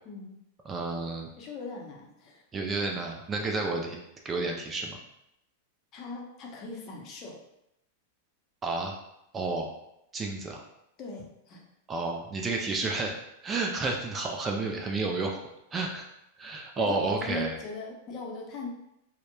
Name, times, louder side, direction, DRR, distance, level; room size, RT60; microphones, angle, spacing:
voice 1, 0.0-0.4 1.4-2.4 5.9-7.4 11.0-11.7 16.8-18.7, left 3 dB, 40° left, -1 dB, 0.6 m, -40 dB
voice 2, 0.7-1.3 2.5-4.0 4.2-5.0 8.6-8.9 9.3-9.7 10.1-10.6 11.9-13.2 13.4-15.4 15.7-16.1 16.4-17.6, right 3 dB, 20° right, 1 dB, 0.3 m, -31 dB
2.8 x 2.0 x 2.2 m, 0.83 s
hypercardioid pair, 120°, 0 cm